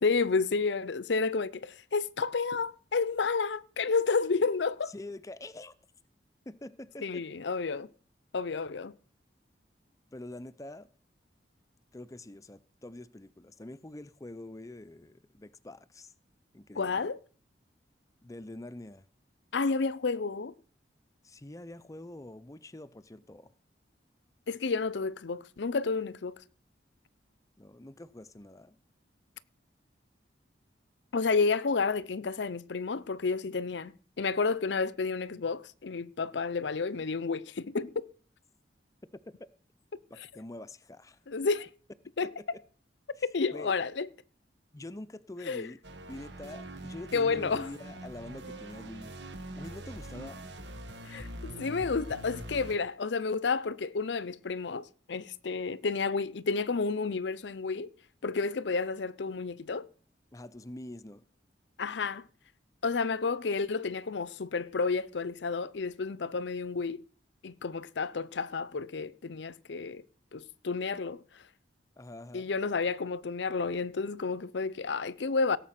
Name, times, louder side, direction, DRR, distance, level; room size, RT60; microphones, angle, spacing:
voice 1, 0.0-4.9 7.0-7.9 8.3-8.9 16.8-17.2 19.5-20.5 24.5-26.4 31.1-38.1 41.3-41.7 42.2-42.3 43.2-44.1 45.5-45.7 47.1-47.7 51.1-57.9 58.2-59.9 61.8-62.3 62.8-67.0 67.4-70.0 70.3-71.4 72.3-75.6, left 4 dB, 75° left, 0.6 m, -31 dB
voice 2, 4.9-5.8 6.5-7.2 10.1-10.9 11.9-16.1 16.5-17.1 18.2-19.0 21.2-23.5 27.6-28.8 39.3-39.5 40.1-41.2 42.2-42.6 43.2-43.3 43.5-43.8 44.7-45.8 46.1-49.2 49.6-50.5 60.3-61.2 72.0-72.5, left 1 dB, 20° left, 0.5 m, -45 dB
sound 1, 45.8-52.7, right 1 dB, 75° right, 1.6 m, -44 dB
17.0 x 7.3 x 5.9 m
head